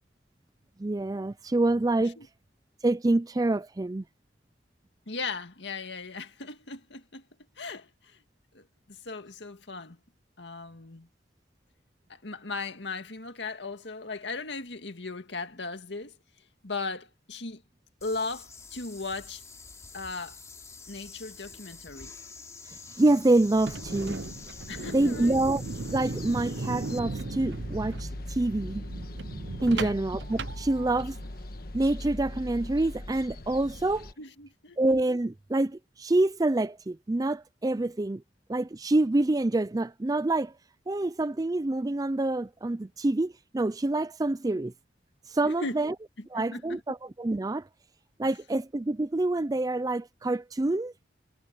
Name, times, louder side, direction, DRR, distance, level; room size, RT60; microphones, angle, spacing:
voice 1, 0.8-2.2 2.8-4.0 23.0-24.2 24.9-25.6 25.9-28.8 29.6-31.2 31.7-34.1 34.8-38.2 38.5-40.5 40.9-44.7 45.3-45.9 46.3-47.7 48.2-50.9, right 2 dB, 20° right, 0.4 m, -26 dB
voice 2, 5.1-7.2 7.6-8.2 8.5-10.0 10.4-11.1 12.1-16.1 16.6-17.6 18.0-19.4 19.9-20.4 20.9-22.1 24.7-25.4 29.7-29.9 34.2-34.8 45.4-45.9 46.3-46.8, left 3 dB, 70° left, 2.0 m, -37 dB
sound 1, 18.0-27.0, left 4 dB, 15° left, 3.0 m, -47 dB
sound 2, 23.5-31.3, right 3 dB, 70° right, 0.7 m, -37 dB
sound 3, 23.7-34.1, left 1 dB, 55° left, 1.4 m, -41 dB
head